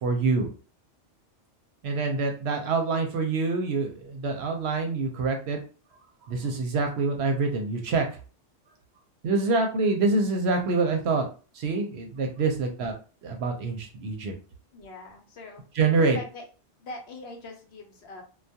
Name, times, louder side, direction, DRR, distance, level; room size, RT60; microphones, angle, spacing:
voice 1, 0.0-0.5 1.8-5.6 6.3-8.1 9.2-11.2 11.5-12.9 13.2-14.3 15.7-16.2, right 3 dB, 65° right, 3 dB, 0.8 m, -26 dB
voice 2, 14.7-15.6 16.1-16.5 16.8-18.2, left 2 dB, 65° left, 2 dB, 0.8 m, -42 dB
2.3 x 2.2 x 2.6 m, 0.37 s
omnidirectional pair, 1.2 m